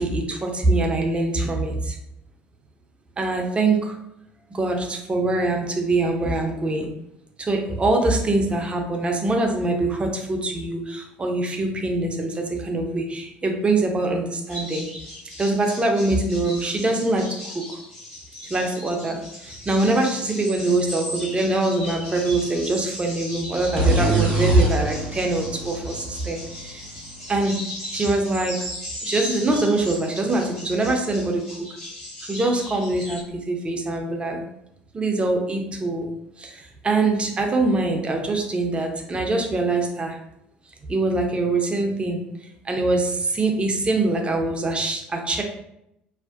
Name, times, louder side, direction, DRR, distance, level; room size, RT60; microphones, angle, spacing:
voice 1, 0.0-2.0 3.2-4.0 4.5-6.9 7.4-14.9 15.4-17.8 18.4-27.6 27.9-28.7 29.0-31.7 32.3-34.4 34.9-36.1 36.4-40.2 40.9-45.4, right 2 dB, 20° right, 2 dB, 0.5 m, -23 dB
sound 1, 14.5-33.2, left 1 dB, 70° left, 1.3 m, -37 dB
sound 2, 23.8-27.4, right 2 dB, 85° right, 0.5 m, -25 dB
2.5 x 2.1 x 2.4 m, 0.80 s
figure-of-eight pair, 60°, 5 cm